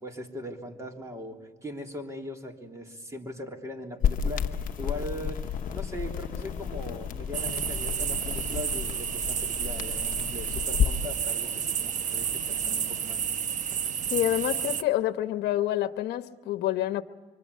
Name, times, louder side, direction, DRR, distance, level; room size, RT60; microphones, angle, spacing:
voice 1, 0.0-13.2 13.7-13.8, left 1 dB, 20° right, 2 dB, 3.6 m, -40 dB
sound 1, 4.0-11.0, left 8 dB, 55° left, 1.1 m, -31 dB
sound 2, 4.3-13.1, left 2 dB, 10° left, 6.9 m, -52 dB
sound 3, 7.3-14.8, right 8 dB, 45° right, 1.0 m, -31 dB
voice 2, 14.1-17.0, left 13 dB, 75° left, 11 dB, 1.1 m, -27 dB
25.5 x 24.5 x 8.4 m, 1.4 s
cardioid pair, 110°, 17 cm